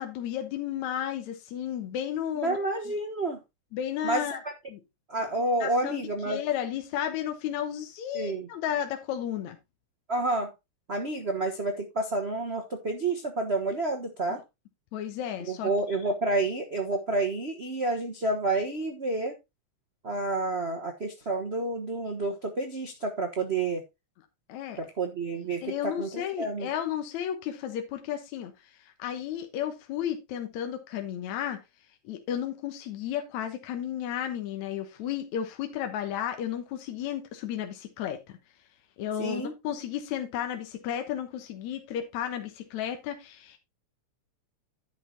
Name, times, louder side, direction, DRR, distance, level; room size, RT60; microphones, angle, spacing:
voice 1, 0.0-2.6 3.7-4.4 4.7-4.8 5.6-9.6 14.9-15.7 24.5-24.8 25.6-28.5 29.0-31.6 32.1-38.2 39.0-43.6, left 10 dB, 75° left, 2.4 m, -33 dB
voice 2, 2.4-3.4 4.0-4.4 5.1-6.4 8.1-8.5 10.1-10.5 10.9-14.4 15.5-19.4 20.0-23.8 24.8-26.7 39.2-39.5, right 2 dB, 80° right, 0.5 m, -29 dB
11.0 x 5.9 x 3.8 m
omnidirectional pair, 3.4 m